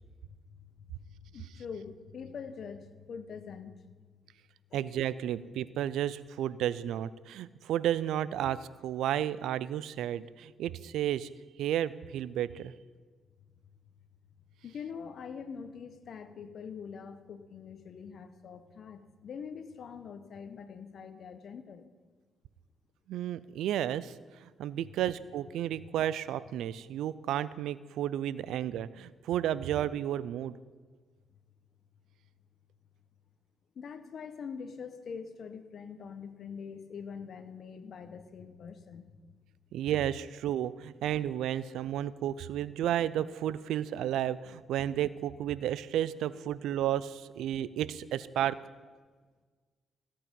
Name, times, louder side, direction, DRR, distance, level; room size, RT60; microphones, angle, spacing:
voice 1, 1.2-3.8 4.7-4.8 14.6-21.9 33.7-39.1, left 6 dB, 65° left, 10 dB, 1.1 m, -44 dB
voice 2, 4.7-11.3 11.6-12.7 23.1-24.2 24.4-30.5 39.7-48.6, right 11 dB, 80° right, 18 dB, 0.4 m, -32 dB
16.0 x 8.6 x 5.3 m, 1.4 s
supercardioid pair, 55°, 0 cm